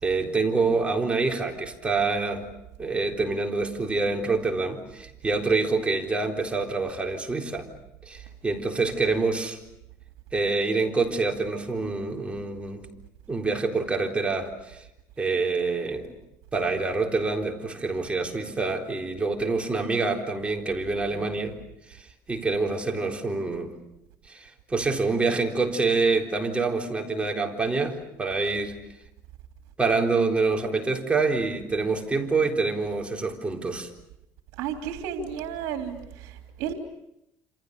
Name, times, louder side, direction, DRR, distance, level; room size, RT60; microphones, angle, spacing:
voice 1, 0.0-2.5 2.8-7.7 8.0-9.6 10.3-12.9 13.3-14.9 15.2-16.1 16.5-21.6 21.9-23.8 24.3-28.8 29.8-33.9, right 3 dB, 15° right, 4.0 m, -26 dB
voice 2, 34.6-36.7, right 8 dB, 80° right, 3.1 m, -33 dB
28.0 x 27.5 x 6.8 m
cardioid pair, 110°, 7 cm